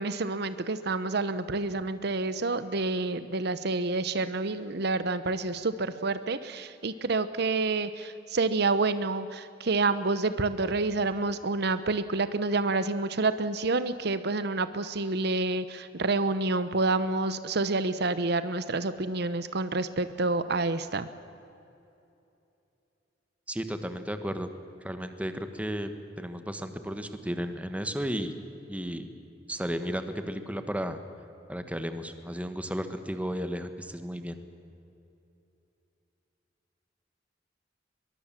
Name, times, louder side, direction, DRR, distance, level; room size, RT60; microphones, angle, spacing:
voice 1, 0.0-21.1, right 3 dB, 65° right, 13 dB, 0.9 m, -28 dB
voice 2, 23.5-24.5 24.8-25.9 26.2-28.3 28.7-29.1 29.5-31.0 31.5-34.4, equal, 10° right, 9 dB, 1.4 m, -33 dB
22.5 x 22.5 x 7.5 m, 2.8 s
head